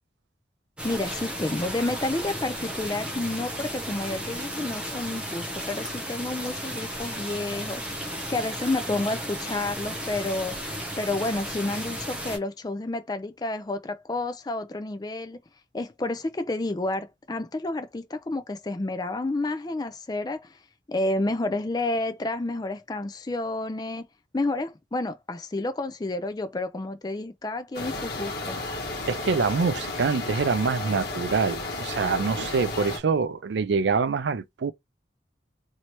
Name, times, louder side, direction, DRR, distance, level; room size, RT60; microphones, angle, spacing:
voice 1, 0.8-8.0 8.3-10.7 11.0-15.4 15.7-20.6 20.9-24.0 24.3-28.6, left 2 dB, 20° left, 0.4 m, -30 dB
sound 1, 0.8-12.4, equal, 5° right, 0.8 m, -34 dB
sound 2, 27.7-33.0, left 2 dB, 60° left, 1.1 m, -33 dB
voice 2, 29.1-34.7, right 5 dB, 75° right, 0.4 m, -25 dB
3.1 x 2.8 x 3.0 m
head